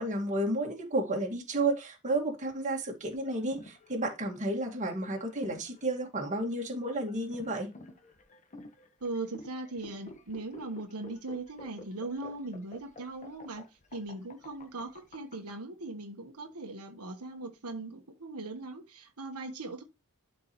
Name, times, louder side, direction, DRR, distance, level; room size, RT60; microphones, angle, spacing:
voice 1, 0.0-7.7, right 2 dB, 35° right, 2.1 m, -32 dB
sound 1, 3.1-15.5, left 1 dB, 35° left, 1.2 m, -50 dB
voice 2, 9.0-19.8, right 2 dB, 80° right, 1.3 m, -39 dB
12.0 x 4.7 x 3.1 m
head